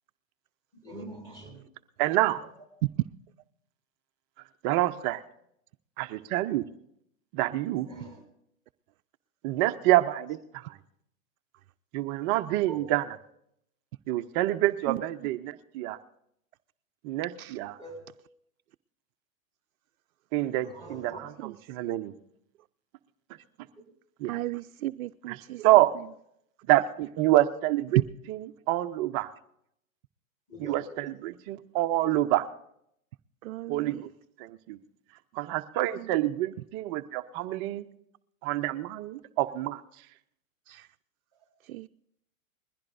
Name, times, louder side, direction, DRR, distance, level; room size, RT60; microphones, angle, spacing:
voice 1, 0.7-1.6 2.4-2.5 7.8-8.2 9.5-9.6 12.7-12.8 17.8-18.0 20.6-21.2 30.5-30.9 41.3-41.4, right 2 dB, 10° left, 6.6 m, -43 dB
voice 2, 2.0-2.4 4.6-5.2 6.0-6.7 7.3-7.9 9.4-10.8 11.9-13.0 14.1-16.0 17.0-17.8 20.3-22.1 24.2-24.4 25.3-25.4 25.6-25.9 26.7-28.0 28.3-28.4 28.7-29.3 30.6-32.5 33.7-34.1 34.4-34.8 35.3-37.9 38.4-39.8, right 15 dB, 35° right, 0.6 m, -27 dB
voice 3, 24.3-25.7 27.9-28.0 33.4-34.0 36.0-36.1 40.7-40.9 41.6-41.9, right 16 dB, 75° right, 0.5 m, -32 dB
21.0 x 15.5 x 2.6 m
hypercardioid pair, 120°, 42 cm